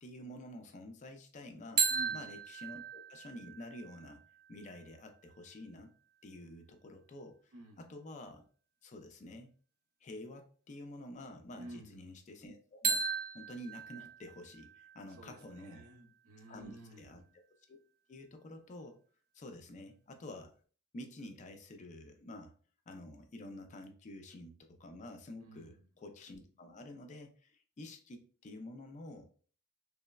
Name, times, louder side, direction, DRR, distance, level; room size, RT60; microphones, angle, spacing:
voice 1, 0.0-1.8 2.1-4.2 4.5-5.9 6.2-8.4 8.8-9.5 10.0-13.0 13.3-15.9 16.5-17.2 17.7-17.8 18.1-19.0 19.3-20.5 20.9-22.5 22.9-29.3, left 1 dB, 35° left, 5 dB, 0.4 m, -49 dB
sound 1, 1.8-5.6 12.8-16.7, right 5 dB, 45° right, 0.7 m, -38 dB
voice 2, 1.9-2.2 7.5-7.9 11.5-12.0 15.2-17.3 25.4-25.9, equal, 85° right, 3 dB, 0.6 m, -52 dB
3.2 x 2.0 x 2.2 m, 0.42 s
head